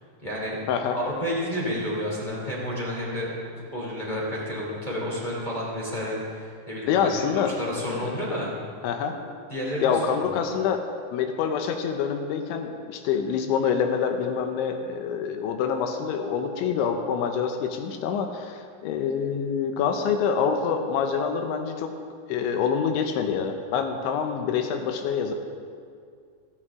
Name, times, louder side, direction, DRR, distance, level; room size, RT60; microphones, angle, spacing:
voice 1, 0.2-0.6 0.9-3.3 3.7-6.9 7.2-8.5 9.5-10.4, equal, 15° left, -5 dB, 1.7 m, -30 dB
voice 2, 6.9-7.5 7.8-8.4 8.8-9.1 9.8-10.8 11.1-21.9 22.3-25.3, left 7 dB, 80° left, 5 dB, 3.2 m, -26 dB
27.0 x 9.2 x 3.7 m, 2.2 s
omnidirectional pair, 5.4 m